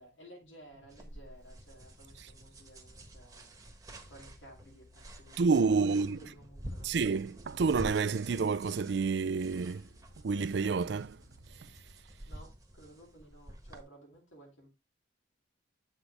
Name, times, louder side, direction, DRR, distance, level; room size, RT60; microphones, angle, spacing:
voice 1, 0.0-3.8 4.1-5.3 5.6-6.9 12.2-14.7, right 1 dB, 80° left, 2.5 m, -55 dB
sound 1, 0.9-13.8, right 1 dB, 15° right, 1.2 m, -49 dB
sound 2, 4.0-12.2, left 2 dB, 35° left, 2.2 m, -62 dB
voice 2, 5.4-6.2 6.8-9.9 10.2-11.2, right 4 dB, 60° right, 0.4 m, -29 dB
8.4 x 5.8 x 3.3 m
head